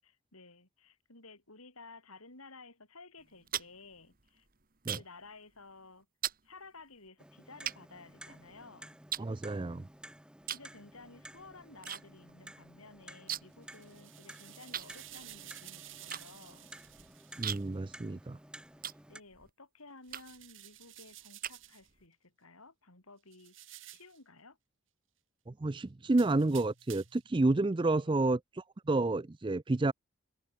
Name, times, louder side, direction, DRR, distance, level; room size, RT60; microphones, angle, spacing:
voice 1, 0.0-4.5 4.9-6.1 6.4-9.0 10.5-16.7 19.1-24.6 27.9-28.2, left 3 dB, 85° left, 7.2 m, -55 dB
sound 1, 3.2-5.3 5.5-5.8 6.2-6.5 7.1-7.2 7.7-8.6 9.1-10.0 10.4-10.7 11.0-12.0 12.3-12.4 12.6-13.7 13.9-14.0 14.7-19.5 20.1-20.5 21.0-22.1, right 10 dB, 40° right, 2.1 m, -40 dB
Clock, 7.2-19.2, right 1 dB, 5° right, 2.3 m, -53 dB
voice 2, 9.2-9.9 17.4-18.4 25.5-29.9, right 2 dB, 20° right, 0.4 m, -30 dB
sound 2, 13.5-17.7 20.0-21.9 23.3-24.2 26.1-27.3, right 14 dB, 60° right, 7.5 m, -53 dB
head